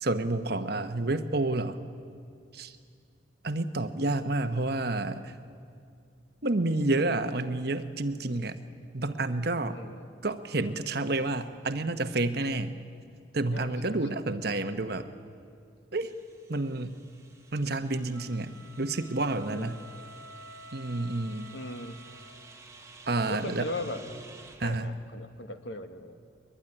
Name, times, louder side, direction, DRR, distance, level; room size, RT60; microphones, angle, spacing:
voice 1, 0.0-1.8 2.5-2.7 3.4-5.3 6.4-8.6 8.9-9.8 10.2-12.8 13.3-15.1 15.9-16.1 16.5-16.9 17.5-19.8 20.7-21.5 23.1-23.7 24.6-24.9, right 2 dB, 55° right, 9 dB, 1.1 m, -29 dB
voice 2, 9.7-10.1 13.5-14.0 19.5-19.7 21.5-22.0 23.3-24.0 24.6-26.2, left 1 dB, 70° left, 7 dB, 1.6 m, -38 dB
sound 1, 16.0-24.8, right 3 dB, 15° right, 1.7 m, -52 dB
sound 2, 18.1-22.6, right 1 dB, 70° right, 1.2 m, -50 dB
22.5 x 21.0 x 10.0 m, 2.4 s
head